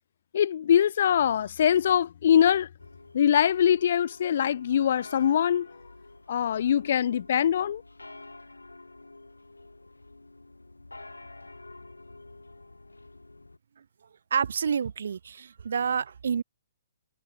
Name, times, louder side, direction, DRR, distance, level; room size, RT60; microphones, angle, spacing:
voice 1, 0.3-2.7 3.1-5.7 6.3-7.8, left 9 dB, 50° left, 2.1 m, -23 dB
sound 1, 2.8-13.6, left 2 dB, 80° left, 6.7 m, -49 dB
voice 2, 14.3-16.4, right 7 dB, 60° right, 1.2 m, -28 dB
figure-of-eight pair, 125°, 0 cm